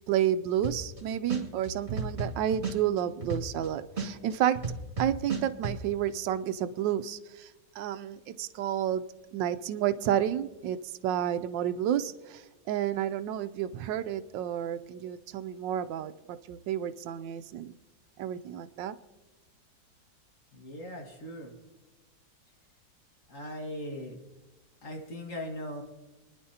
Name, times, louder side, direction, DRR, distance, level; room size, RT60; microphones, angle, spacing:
voice 1, 0.1-4.6 5.0-9.0 9.3-10.8 11.0-17.8 18.2-19.0, right 10 dB, 85° right, 12 dB, 1.3 m, -30 dB
sound 1, 0.6-1.0 1.3-3.7 4.0-5.8, right 4 dB, 35° right, 2.6 m, -33 dB
voice 2, 20.5-21.6 23.3-24.2 24.8-25.8, equal, 45° left, 1 dB, 2.0 m, -39 dB
27.5 x 10.5 x 2.8 m, 1.2 s
omnidirectional pair, 2.0 m